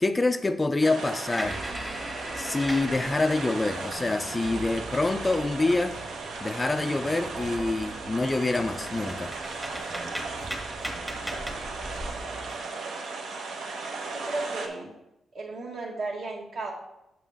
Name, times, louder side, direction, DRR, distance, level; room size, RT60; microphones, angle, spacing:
voice 1, 0.0-1.6 2.4-6.0 6.4-9.3, left 2 dB, 15° left, 9 dB, 0.3 m, -26 dB
sound 1, 0.8-14.7, right 3 dB, 85° right, 0.9 m, -36 dB
sound 2, 1.3-4.3 4.7-6.2 6.6-6.7 7.1-7.6 8.2-8.3 8.7-12.1, equal, 5° right, 0.8 m, -38 dB
sound 3, 1.3-12.6, right 3 dB, 35° right, 0.6 m, -44 dB
voice 2, 14.0-14.9 15.3-16.7, right 3 dB, 60° right, 0 dB, 1.5 m, -34 dB
7.0 x 5.9 x 3.4 m, 0.87 s
wide cardioid pair, 145°, 0 cm